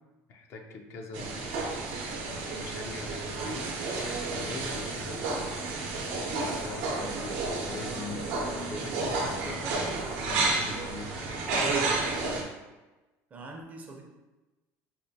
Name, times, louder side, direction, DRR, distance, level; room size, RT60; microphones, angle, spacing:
voice 1, 0.3-1.4 2.3-3.7 4.3-5.7 6.3-9.6 10.2-11.5, left 4 dB, 45° left, 3 dB, 0.4 m, -42 dB
sound 1, 1.1-12.4, right 3 dB, 80° right, 0.7 m, -31 dB
voice 2, 13.3-14.0, right 2 dB, 25° right, 1 dB, 0.5 m, -44 dB
4.2 x 2.5 x 2.6 m, 1.1 s
cardioid pair, 150°, 6 cm